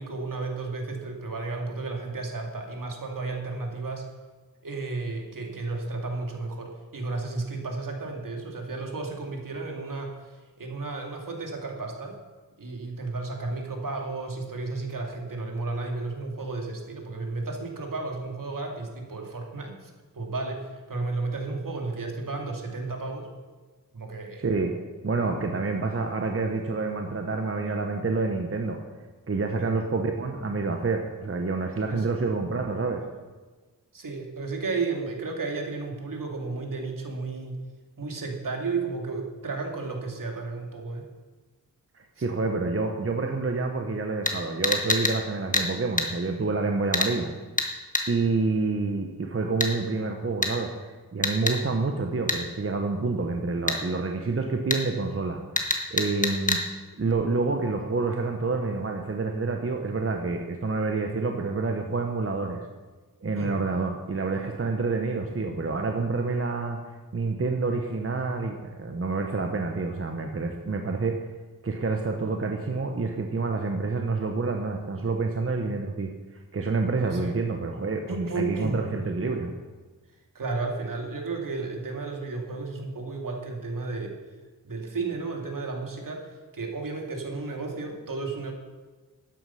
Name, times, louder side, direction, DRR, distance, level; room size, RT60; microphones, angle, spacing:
voice 1, 0.0-4.0 4.6-12.1 12.6-23.3 23.9-24.5 29.6-29.7 31.9-32.2 33.9-37.6 38.0-41.0 42.2-42.3 63.4-63.5 77.0-77.4 78.1-78.8 80.3-84.1 84.6-88.5, right 3 dB, 65° right, 2 dB, 2.4 m, -33 dB
voice 2, 24.4-24.7 25.0-28.8 29.3-33.0 41.9-47.3 48.1-50.7 51.1-55.4 55.9-56.6 57.0-62.6 63.2-66.8 67.1-71.2 71.6-76.1 76.5-79.5, right 3 dB, 40° right, 3 dB, 1.0 m, -28 dB
sound 1, 44.2-44.4 44.6-45.2 45.5-45.7 46.0-46.1 46.9-47.1 47.6-47.7 47.9-48.1 49.6-49.7 50.4-50.5 51.2-51.6 52.3-52.4 53.7-53.8 54.7-54.8 55.6-56.6 57.1-57.2, left 2 dB, 20° left, 1.5 m, -25 dB
12.5 x 9.7 x 5.7 m, 1.3 s
wide cardioid pair, 110°, 35 cm